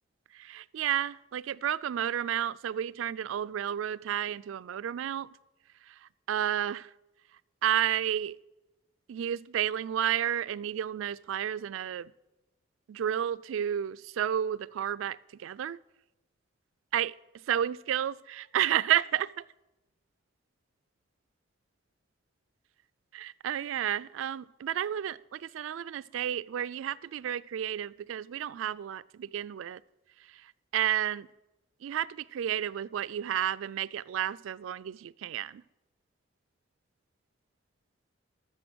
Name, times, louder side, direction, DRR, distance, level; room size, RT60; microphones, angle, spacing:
voice 1, 0.3-5.3 5.9-6.9 7.6-8.4 9.1-12.1 12.9-15.8 16.9-17.2 17.5-19.4 23.1-29.8 30.2-31.3 31.8-35.6, right 10 dB, 85° right, 0.3 m, -31 dB
13.0 x 6.6 x 6.1 m
head